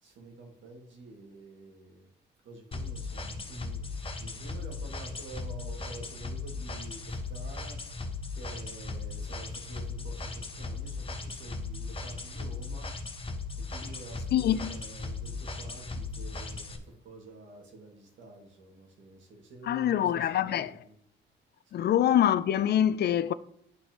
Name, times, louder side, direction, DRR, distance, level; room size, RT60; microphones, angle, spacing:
voice 1, 0.0-2.1 2.5-7.8 8.3-12.9 13.6-21.0 21.7-21.9, right 2 dB, 75° right, 2.0 m, -49 dB
sound 1, 2.7-16.8, left 3 dB, 25° left, 0.9 m, -37 dB
voice 2, 14.3-14.7 19.7-20.7 21.7-23.3, left 10 dB, 55° left, 0.4 m, -25 dB
11.0 x 4.2 x 2.9 m
cardioid pair, 90°, 20 cm